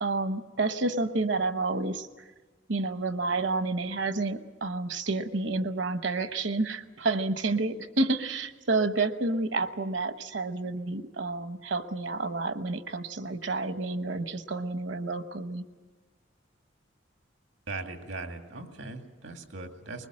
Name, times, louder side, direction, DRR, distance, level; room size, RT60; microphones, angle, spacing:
voice 1, 0.0-2.1 2.7-15.6, right 3 dB, 70° right, 10 dB, 1.0 m, -29 dB
voice 2, 17.7-20.1, right 3 dB, 90° right, 5 dB, 2.2 m, -39 dB
22.0 x 20.0 x 7.6 m, 1.3 s
head